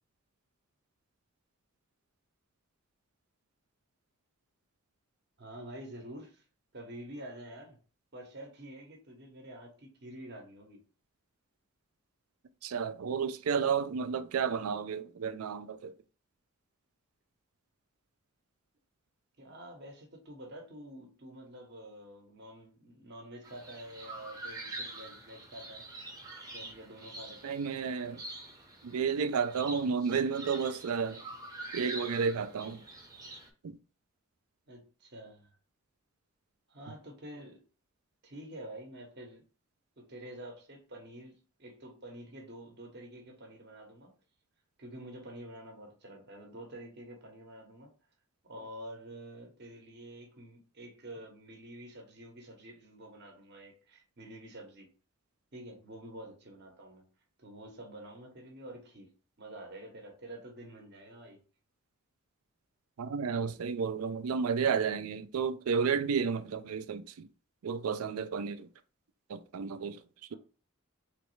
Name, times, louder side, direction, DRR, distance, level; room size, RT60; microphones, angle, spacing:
voice 1, 5.4-6.4 6.7-7.8 8.1-10.8 19.4-25.8 26.5-27.6 34.7-35.5 36.7-37.6 38.2-39.4 40.0-44.1 44.8-47.9 48.4-54.9 55.5-57.0 57.4-59.1 59.4-61.4 70.3-70.4, right 1 dB, 50° right, 0.9 m, -48 dB
voice 2, 12.6-15.9 27.4-28.2 28.8-31.2 31.7-32.8 63.0-67.3 67.6-68.7 69.3-70.0, right 6 dB, 85° right, 0.4 m, -32 dB
sound 1, 23.4-33.5, right 2 dB, 15° right, 0.7 m, -46 dB
3.3 x 3.1 x 3.1 m
head